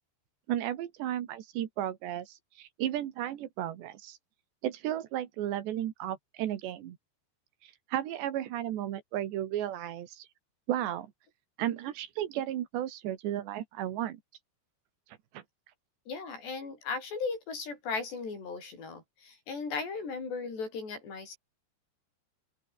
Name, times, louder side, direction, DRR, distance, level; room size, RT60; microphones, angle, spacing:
voice 1, 0.5-4.2 4.6-7.0 7.6-10.3 10.7-11.1 11.6-14.2 15.3-15.4, right 12 dB, 75° right, 3.8 m, -34 dB
voice 2, 16.1-21.4, left 4 dB, 70° left, 9.9 m, -37 dB
open air
omnidirectional pair, 5.1 m